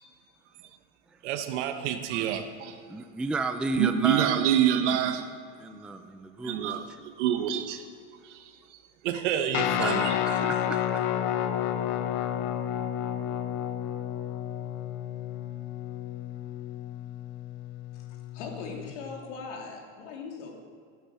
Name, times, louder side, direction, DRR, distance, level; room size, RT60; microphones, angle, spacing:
voice 1, 1.2-2.8 3.8-5.3 5.7-5.8 6.4-7.9 8.2-8.5 9.0-10.2, right 10 dB, 80° right, 7 dB, 1.4 m, -27 dB
voice 2, 2.9-4.4 5.6-6.8 9.8-11.2, right 3 dB, 5° right, 7 dB, 0.4 m, -33 dB
Guitar, 9.5-18.9, left 10 dB, 55° left, 1.1 m, -31 dB
voice 3, 18.3-20.6, left 4 dB, 80° left, 1 dB, 3.3 m, -40 dB
15.5 x 9.6 x 7.9 m, 2.2 s
supercardioid pair, 145°, 35 cm